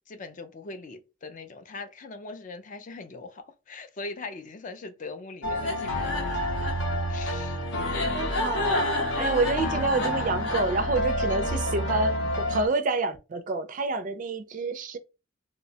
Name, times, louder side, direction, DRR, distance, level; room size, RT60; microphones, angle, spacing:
voice 1, 0.1-6.3 7.1-7.6 8.0-8.4 9.3-9.4, left 3 dB, 40° left, 0.4 m, -41 dB
sound 1, 5.4-12.7, left 1 dB, 65° left, 0.7 m, -28 dB
voice 2, 8.1-8.9 9.2-15.0, right 3 dB, 40° right, 0.4 m, -28 dB
2.7 x 2.1 x 2.7 m
head